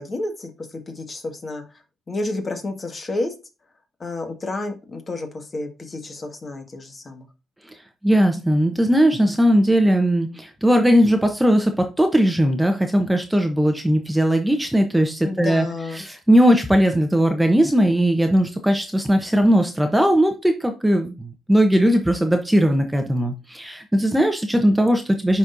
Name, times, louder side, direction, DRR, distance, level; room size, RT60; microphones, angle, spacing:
voice 1, 0.0-1.6 2.1-3.3 4.0-7.3 15.2-16.0, left 2 dB, 35° left, 4 dB, 1.7 m, -30 dB
voice 2, 8.0-15.6 16.0-25.4, equal, 5° right, 5 dB, 0.9 m, -18 dB
10.5 x 4.2 x 2.6 m, 0.29 s
cardioid pair, 90°, 0 cm